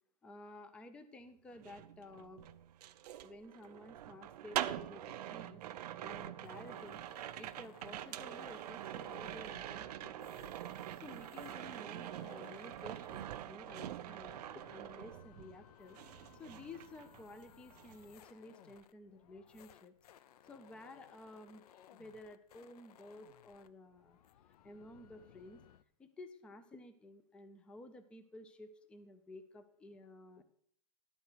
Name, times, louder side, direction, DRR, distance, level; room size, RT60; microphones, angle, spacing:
voice 1, 0.2-2.4 3.2-5.6 6.0-7.0 7.4-10.5 11.0-16.0 16.3-19.9 20.4-21.6 21.9-24.2 24.6-25.6 26.0-30.4, left 2 dB, 5° left, 9 dB, 0.4 m, -53 dB
sound 1, 1.5-15.6 15.9-17.4 17.7-18.0, right 12 dB, 75° right, 0.5 m, -44 dB
sound 2, 6.4-25.8, left 11 dB, 70° left, 0.5 m, -62 dB
11.0 x 4.5 x 6.5 m, 0.64 s
supercardioid pair, 155°, 20 cm